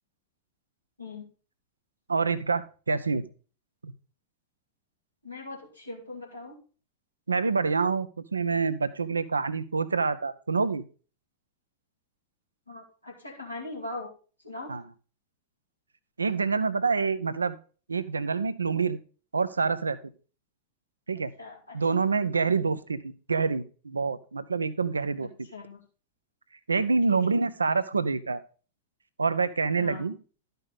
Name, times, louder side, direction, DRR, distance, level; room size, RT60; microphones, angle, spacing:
voice 1, 2.1-3.2 3.8-3.9 7.3-10.8 14.7-14.9 16.2-17.6 17.9-19.0 19.3-20.0 21.1-21.3 21.7-25.3 26.7-28.4 29.2-30.2, right 4 dB, 75° right, 13 dB, 0.5 m, -27 dB
voice 2, 5.2-6.6 12.7-14.1 14.4-14.7 21.4-21.8 25.5-25.8 29.8-30.0, left 2 dB, 85° left, -1 dB, 2.3 m, -40 dB
12.0 x 5.3 x 4.0 m, 0.37 s
figure-of-eight pair, 90°, 0 cm